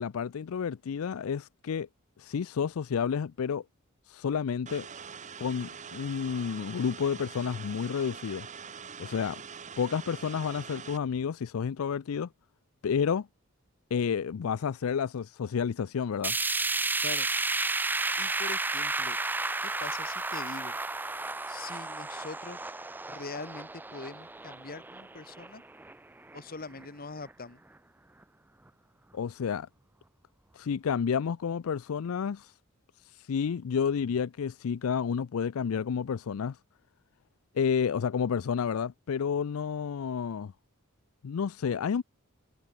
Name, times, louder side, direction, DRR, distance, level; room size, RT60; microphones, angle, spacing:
voice 1, 0.0-1.9 2.2-3.6 4.1-4.9 5.4-8.5 9.0-9.4 9.8-12.3 12.8-13.3 13.9-16.4 29.1-29.7 30.5-32.5 33.0-36.6 37.5-40.5 41.2-42.0, left 6 dB, 75° left, 0.4 m, -30 dB
sound 1, 4.7-11.0, right 6 dB, 35° right, 1.0 m, -44 dB
sound 2, 16.2-26.4 26.8-26.9 27.3-27.4 28.2-28.3, right 3 dB, 10° right, 0.4 m, -32 dB
voice 2, 18.2-19.2 19.6-20.8 21.5-22.7 23.1-25.6 26.3-27.6, left 3 dB, 45° left, 1.8 m, -43 dB
head